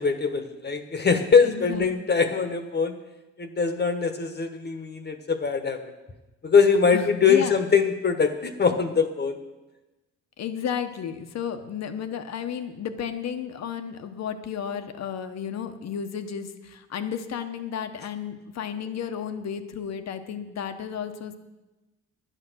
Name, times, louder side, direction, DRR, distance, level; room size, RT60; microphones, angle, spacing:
voice 1, 0.0-3.0 3.4-5.9 6.4-9.4, left 5 dB, 35° left, 7 dB, 1.2 m, -22 dB
voice 2, 1.4-1.9 6.9-7.6 10.4-21.4, left 8 dB, 60° left, 8 dB, 1.1 m, -33 dB
10.5 x 9.2 x 6.3 m, 1.1 s
cardioid pair, 90°, 30 cm